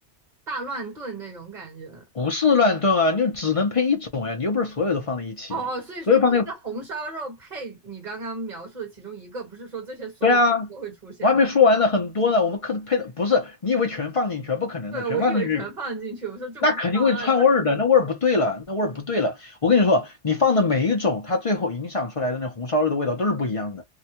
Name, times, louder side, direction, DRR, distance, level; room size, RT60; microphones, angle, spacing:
voice 1, 0.5-2.0 5.5-10.4 10.7-11.8 14.9-17.5, right 4 dB, 40° right, 1.5 m, -34 dB
voice 2, 2.1-5.6 6.1-6.5 10.2-10.7 11.2-15.6 16.6-23.8, left 4 dB, 35° left, 0.6 m, -22 dB
2.8 x 2.3 x 2.9 m
omnidirectional pair, 1.2 m